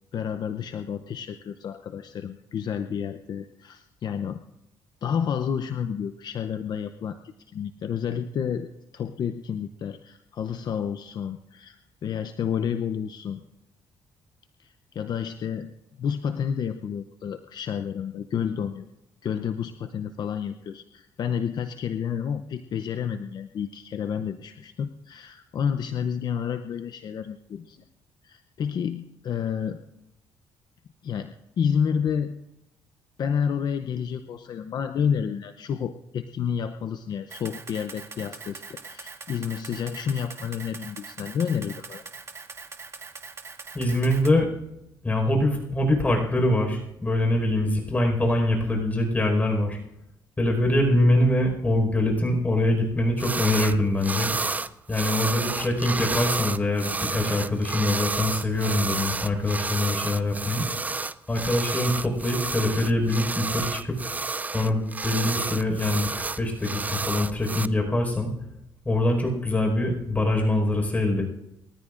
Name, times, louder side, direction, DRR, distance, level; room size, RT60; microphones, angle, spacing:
voice 1, 0.1-4.4 5.0-7.2 7.5-8.7 8.9-13.4 14.6-18.9 19.2-27.8 28.2-29.8 31.0-32.3 33.2-42.0, left 7 dB, 55° left, 8 dB, 0.7 m, -30 dB
Camera, 37.3-44.3, right 4 dB, 35° right, 1.6 m, -42 dB
voice 2, 43.7-44.5 45.0-49.8 50.4-54.3 54.9-60.7 61.3-63.9 64.5-68.3 68.8-71.2, left 1 dB, 20° left, 1 dB, 5.0 m, -24 dB
sound 1, 53.2-53.7 54.0-67.7, right 3 dB, 20° right, 0.4 m, -30 dB
29.0 x 14.0 x 2.5 m, 0.87 s
cardioid pair, 105°, 8 cm